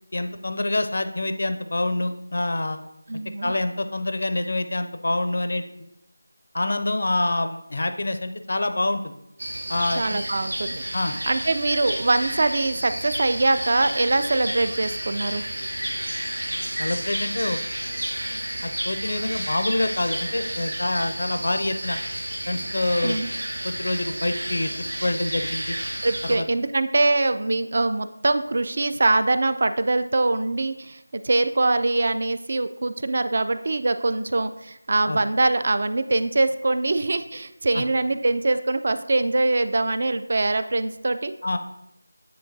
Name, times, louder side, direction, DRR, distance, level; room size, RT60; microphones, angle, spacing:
voice 1, 0.1-2.8 3.4-5.6 6.5-9.1 9.7-10.2 10.9-11.1 16.8-17.6 18.6-22.0 22.5-23.2 23.6-25.8 26.2-26.4 35.1-35.2 37.7-37.8 41.4-41.6, left 2 dB, 60° left, 9 dB, 0.5 m, -26 dB
voice 2, 3.1-3.5 10.0-10.8 11.1-15.4 23.0-23.3 26.0-41.3, right 2 dB, 45° right, 11 dB, 0.4 m, -23 dB
sound 1, 9.4-26.4, right 1 dB, 90° right, 1.8 m, -31 dB
9.6 x 3.8 x 2.6 m, 0.84 s
figure-of-eight pair, 170°, 0 cm